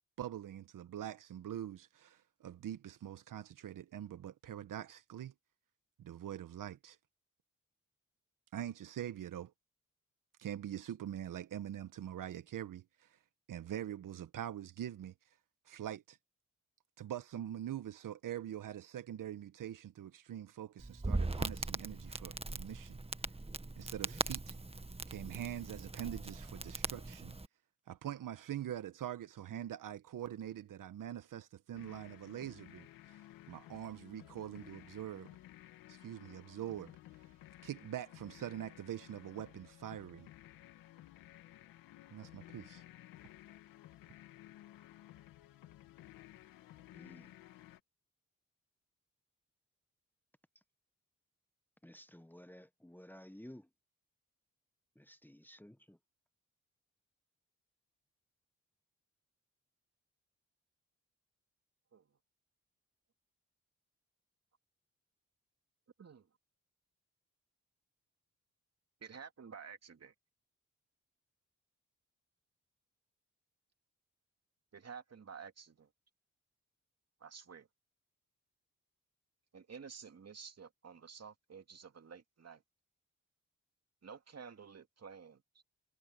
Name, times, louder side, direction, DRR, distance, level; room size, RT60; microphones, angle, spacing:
voice 1, 0.2-5.3 6.0-7.0 8.5-9.5 10.4-13.2 13.5-15.1 15.6-16.2 17.0-23.0 23.8-24.5 25.1-27.4 27.9-33.2 33.5-35.3 35.9-37.3 37.6-40.3 42.1-42.8, right 11 dB, 70° right, 1.4 m, -44 dB
Crackle, 20.8-27.5, right 2 dB, 20° right, 1.7 m, -40 dB
sound 1, 31.7-47.8, left 14 dB, 90° left, 2.5 m, -56 dB
voice 2, 46.9-47.3 51.8-53.7 55.0-56.0, left 1 dB, 5° left, 1.4 m, -54 dB
voice 3, 66.0-66.3 69.0-70.1 74.7-75.9 77.2-77.7 79.5-82.6 84.0-85.6, right 6 dB, 50° right, 2.5 m, -51 dB
supercardioid pair, 45°, 33 cm